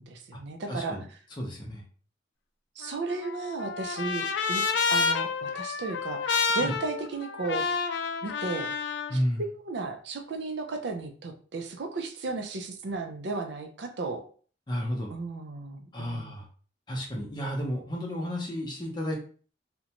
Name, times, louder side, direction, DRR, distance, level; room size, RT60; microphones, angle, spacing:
voice 1, 0.0-1.2 2.8-4.6 4.9-7.7 8.2-8.7 9.1-14.2 15.1-16.3, right 3 dB, 70° right, 5 dB, 0.4 m, -35 dB
voice 2, 0.7-1.0 1.4-1.8 6.6-6.7 9.1-9.4 14.7-15.1 15.9-16.4 16.9-19.2, equal, 25° left, 0 dB, 0.6 m, -32 dB
Trumpet, 2.8-9.1, left 5 dB, 80° left, 0.3 m, -29 dB
2.5 x 2.1 x 2.8 m, 0.42 s
head